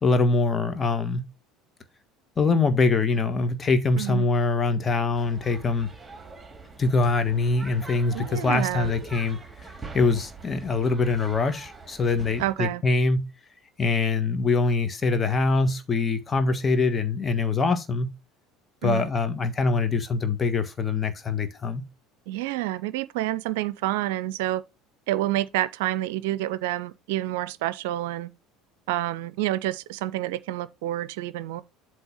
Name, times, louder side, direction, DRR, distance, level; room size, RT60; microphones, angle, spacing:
voice 1, 0.0-1.2 2.4-5.9 6.8-13.3 13.8-18.1 18.8-21.8, left 3 dB, 25° left, 1.4 m, -24 dB
sound 1, 5.1-12.5, right 4 dB, 15° right, 2.5 m, -43 dB
voice 2, 8.1-8.9 12.4-12.8 18.8-19.0 22.3-24.6 25.1-28.3 28.9-31.6, right 15 dB, 70° right, 0.5 m, -28 dB
8.0 x 3.3 x 5.8 m
figure-of-eight pair, 65°, 0 cm